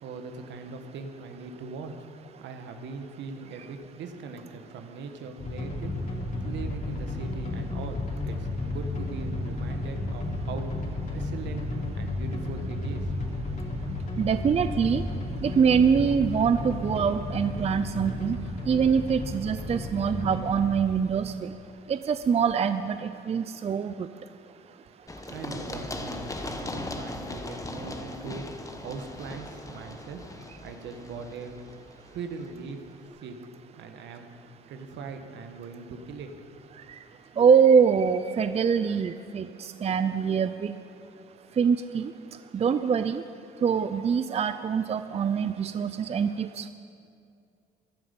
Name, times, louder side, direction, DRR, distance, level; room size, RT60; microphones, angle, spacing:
voice 1, 0.0-2.1 2.4-10.8 11.1-13.2 25.3-28.5 28.8-30.2 30.6-31.6 32.1-32.8 33.2-33.4 33.7-34.3 34.7-36.3, right 4 dB, 75° right, 6 dB, 1.4 m, -40 dB
sound 1, 5.4-20.7, left 2 dB, 45° left, 3.2 m, -33 dB
voice 2, 14.2-15.0 15.4-18.4 18.7-21.5 21.9-24.1 37.4-39.5 39.8-40.7 41.6-42.1 42.5-43.2 43.6-46.7, right 6 dB, 35° right, 11 dB, 0.5 m, -24 dB
Run, 25.1-32.7, left 2 dB, 15° left, 1.2 m, -39 dB
15.5 x 11.5 x 5.3 m, 2.4 s
supercardioid pair, 80°, 19 cm